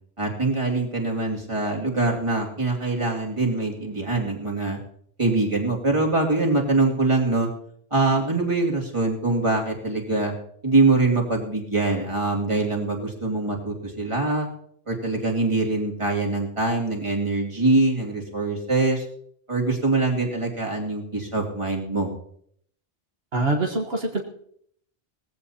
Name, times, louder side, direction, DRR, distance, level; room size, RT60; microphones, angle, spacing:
voice 1, 0.2-4.8 5.2-7.5 7.9-10.3 10.6-14.5 14.9-19.0 19.5-22.1, right 3 dB, 30° right, -1 dB, 2.5 m, -23 dB
voice 2, 23.3-24.2, right 2 dB, 70° right, 1 dB, 1.5 m, -24 dB
19.5 x 15.0 x 2.9 m, 0.66 s
omnidirectional pair, 1.1 m